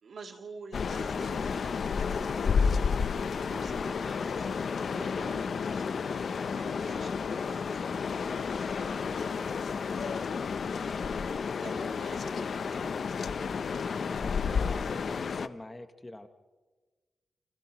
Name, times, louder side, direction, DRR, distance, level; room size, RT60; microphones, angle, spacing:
voice 1, 0.0-2.6 3.4-6.2 6.5-10.5 11.0-13.0, right 4 dB, 60° right, 2 dB, 2.8 m, -49 dB
sound 1, 0.7-15.5, left 5 dB, 55° left, 0.7 m, -31 dB
voice 2, 14.1-16.3, left 1 dB, 15° left, 8 dB, 1.0 m, -46 dB
30.0 x 29.0 x 3.1 m, 1.3 s
wide cardioid pair, 160°, 0 cm